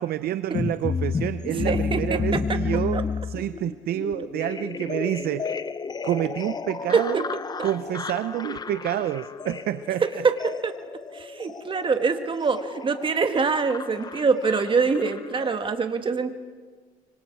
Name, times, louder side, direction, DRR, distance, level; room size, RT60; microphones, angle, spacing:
voice 1, 0.0-5.6 6.0-7.2 7.6-10.0, right 12 dB, 65° right, 12 dB, 0.7 m, -28 dB
sound 1, 0.5-15.7, left 5 dB, 25° left, 0.6 m, -32 dB
voice 2, 1.5-2.4 2.9-3.0 6.9-7.2 7.6-7.7 10.2-10.7 11.1-16.3, right 5 dB, 30° right, 8 dB, 1.7 m, -24 dB
25.0 x 25.0 x 4.7 m, 1.5 s
cardioid pair, 110°, 17 cm